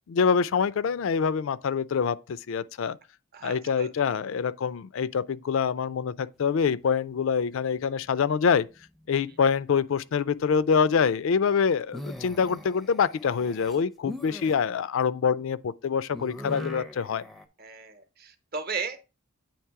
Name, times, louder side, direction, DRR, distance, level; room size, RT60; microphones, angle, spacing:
voice 1, 0.1-3.0 3.4-8.7 9.1-17.2, left 6 dB, 65° left, 0.4 m, -25 dB
voice 2, 3.3-3.9 17.6-19.1, right 5 dB, 45° right, 0.8 m, -36 dB
sound 1, 8.0-8.8 9.1-9.6 11.8-14.5 16.1-17.4, left 1 dB, ahead, 0.5 m, -40 dB
8.6 x 3.1 x 4.6 m
head